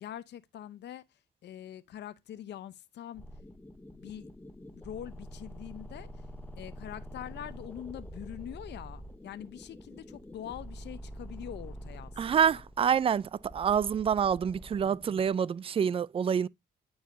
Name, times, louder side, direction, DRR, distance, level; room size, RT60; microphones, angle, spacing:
voice 1, 0.0-3.2 3.9-4.3 4.7-6.2 6.6-12.6, left 10 dB, 60° left, 0.6 m, -44 dB
sound 1, 3.2-15.3, equal, 10° left, 0.6 m, -46 dB
voice 2, 12.2-16.5, right 7 dB, 30° right, 0.3 m, -27 dB
9.0 x 4.7 x 2.5 m
cardioid pair, 90°, 20 cm